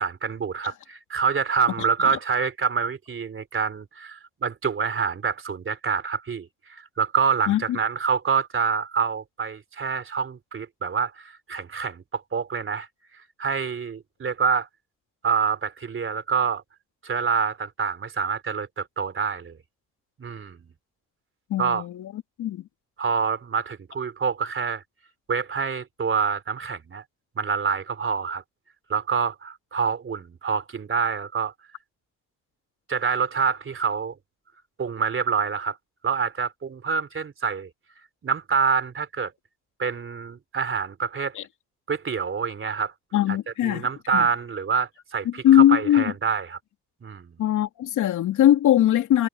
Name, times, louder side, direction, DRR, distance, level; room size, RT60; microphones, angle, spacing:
voice 1, 0.0-12.9 13.4-14.7 15.2-16.6 17.0-19.6 20.2-20.7 21.6-21.8 23.0-24.8 25.3-27.0 27.4-28.4 28.9-31.5 32.9-34.2 34.8-35.8 36.0-37.7 38.2-39.3 39.8-41.3 41.9-42.9 43.6-46.6 47.0-47.4, right 6 dB, 45° right, 3.4 m, -26 dB
voice 2, 7.5-7.8 21.5-22.7 41.3-41.4 43.1-43.9 44.1-44.3 45.2-46.1 47.4-49.3, left 12 dB, 80° left, 3.1 m, -21 dB
cardioid pair, 90°, 30 cm